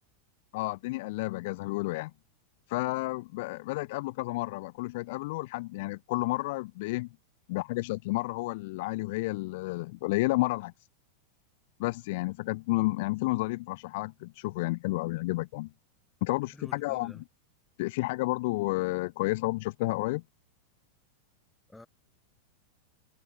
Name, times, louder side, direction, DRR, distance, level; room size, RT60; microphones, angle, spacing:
voice 1, 0.5-2.1 2.7-7.1 7.5-10.7 11.8-15.7 16.2-17.1 17.8-20.2, left 22 dB, 50° left, 0.7 m, -31 dB
voice 2, 16.5-17.2 21.7-21.9, left 2 dB, 5° left, 2.8 m, -49 dB
figure-of-eight pair, 90°, 0 cm